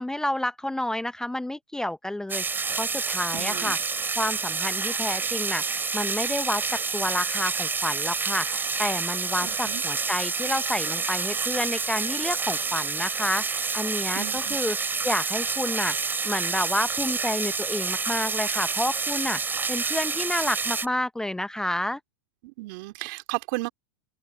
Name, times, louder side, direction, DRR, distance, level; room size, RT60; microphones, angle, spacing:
voice 1, 0.0-3.8 4.2-14.8 15.0-15.9 16.2-22.0, left 1 dB, 5° left, 0.7 m, -30 dB
sound 1, 2.3-20.9, right 4 dB, 15° right, 3.8 m, -28 dB
voice 2, 3.3-3.8 9.4-9.8 14.1-14.6 22.4-23.7, right 24 dB, 60° right, 3.3 m, -34 dB
open air
hypercardioid pair, 100°, 12 cm